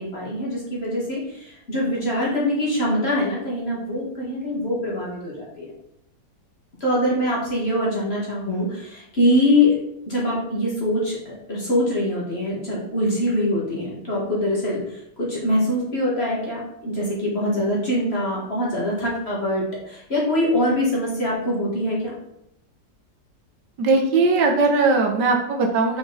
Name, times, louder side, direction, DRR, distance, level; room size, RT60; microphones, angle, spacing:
voice 1, 0.0-5.7 6.8-9.7 10.1-14.8 15.2-22.1, left 1 dB, 35° left, -5 dB, 1.9 m, -23 dB
voice 2, 23.8-26.0, right 3 dB, 75° right, 3 dB, 1.5 m, -19 dB
5.4 x 5.0 x 3.9 m, 0.81 s
omnidirectional pair, 1.9 m